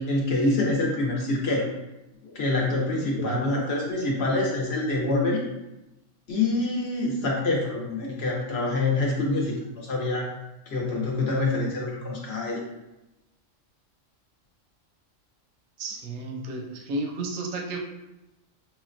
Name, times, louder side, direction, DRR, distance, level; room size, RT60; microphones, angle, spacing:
voice 1, 0.0-1.7 2.2-5.4 6.3-10.3 10.7-12.6, left 2 dB, 60° left, -3 dB, 0.9 m, -26 dB
voice 2, 3.2-4.2 15.8-17.8, right 2 dB, 85° right, 2 dB, 1.0 m, -33 dB
5.7 x 2.1 x 2.4 m, 0.98 s
omnidirectional pair, 1.3 m